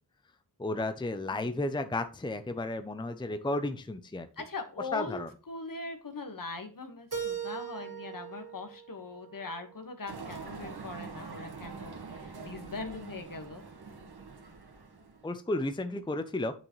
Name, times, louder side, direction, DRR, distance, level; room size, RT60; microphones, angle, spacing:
voice 1, 0.6-4.3 4.9-5.3 15.2-16.5, left 2 dB, 10° left, 10 dB, 0.6 m, -33 dB
voice 2, 1.3-1.7 4.4-5.2 5.5-13.6, left 3 dB, 60° left, 7 dB, 1.6 m, -41 dB
Keyboard (musical), 7.1-10.0, right 7 dB, 55° right, 2.9 m, -40 dB
sound 1, 10.1-15.3, right 4 dB, 80° right, 1.7 m, -44 dB
8.8 x 6.0 x 3.1 m, 0.37 s
wide cardioid pair, 105°, 38 cm